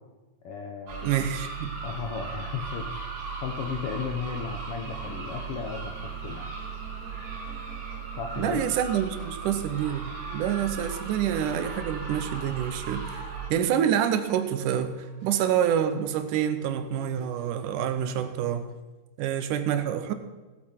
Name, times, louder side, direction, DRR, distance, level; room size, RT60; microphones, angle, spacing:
voice 1, 0.4-1.3 1.8-3.1 3.4-6.5 8.2-8.7, left 7 dB, 80° left, 4 dB, 1.3 m, -35 dB
sound 1, 0.9-13.5, right 5 dB, 65° right, 3.1 m, -37 dB
voice 2, 1.0-1.7 8.4-10.1 10.3-18.7 19.2-20.1, right 9 dB, 80° right, 10 dB, 2.3 m, -27 dB
Musical instrument, 4.8-18.6, right 2 dB, 50° right, 1.1 m, -51 dB
16.5 x 8.5 x 4.4 m, 1.2 s
omnidirectional pair, 3.7 m